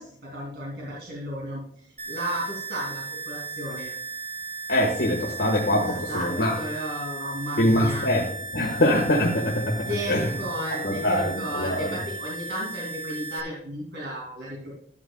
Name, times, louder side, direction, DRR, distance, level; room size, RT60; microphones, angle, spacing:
voice 1, 0.0-3.9 5.7-8.1 9.9-14.7, equal, 75° right, -4 dB, 2.8 m, -34 dB
sound 1, 2.0-13.4, right 4 dB, 40° right, 1.7 m, -36 dB
voice 2, 4.7-6.5 7.6-8.2 8.5-10.3 10.8-11.9, left 1 dB, 80° left, -1 dB, 1.7 m, -23 dB
12.5 x 10.0 x 2.3 m, 0.66 s
head